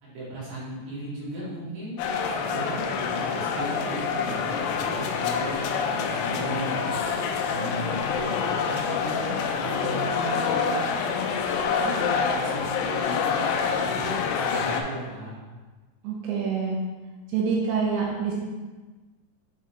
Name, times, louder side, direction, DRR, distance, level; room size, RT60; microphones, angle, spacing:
voice 1, 0.0-2.0 2.3-5.5 5.8-7.0 7.5-10.8 11.6-15.3, right 1 dB, 60° right, -9 dB, 3.6 m, -36 dB
sound 1, 2.0-14.8, left 6 dB, 90° left, 3.0 m, -27 dB
sound 2, 3.5-10.0, left 4 dB, 70° left, 2.5 m, -41 dB
voice 2, 16.0-16.8 17.3-18.3, right 5 dB, 80° right, -3 dB, 2.9 m, -26 dB
8.2 x 3.9 x 3.1 m, 1.3 s
omnidirectional pair, 5.4 m